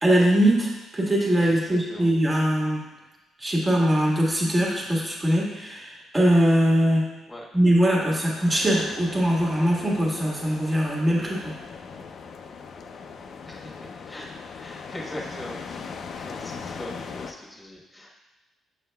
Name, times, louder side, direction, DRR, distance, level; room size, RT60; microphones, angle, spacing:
voice 1, 0.0-2.8 3.4-7.0 7.5-11.5, equal, 25° right, -3 dB, 1.5 m, -22 dB
voice 2, 1.4-2.1 7.3-7.4 13.5-14.3 14.6-15.8 16.1-18.1, left 1 dB, 15° left, -2 dB, 1.3 m, -41 dB
sound 1, 8.5-17.3, left 5 dB, 60° left, 0.5 m, -39 dB
7.2 x 6.4 x 2.3 m, 1.1 s
cardioid pair, 90°, 0 cm